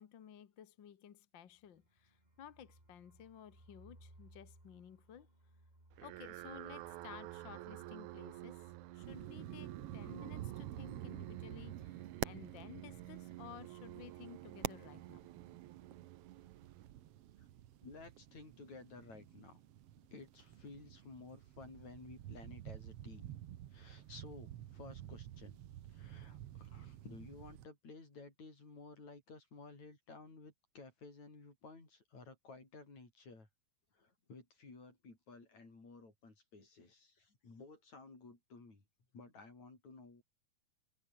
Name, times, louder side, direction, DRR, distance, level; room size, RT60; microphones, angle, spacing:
voice 1, 0.0-5.3 6.0-8.6 8.9-15.2, left 9 dB, 50° left, 1.6 m, -55 dB
sound 1, 1.5-11.2 11.5-11.6 11.9-12.3, right 1 dB, 15° right, 5.7 m, -66 dB
sound 2, 5.9-17.4, right 17 dB, 80° right, 2.2 m, -51 dB
sound 3, 9.0-27.7, right 12 dB, 60° right, 1.9 m, -49 dB
voice 2, 17.8-19.6 20.1-23.4 23.7-25.6 25.9-33.5 33.9-38.8 39.1-40.2, left 3 dB, 65° left, 8.2 m, -55 dB
omnidirectional pair, 3.4 m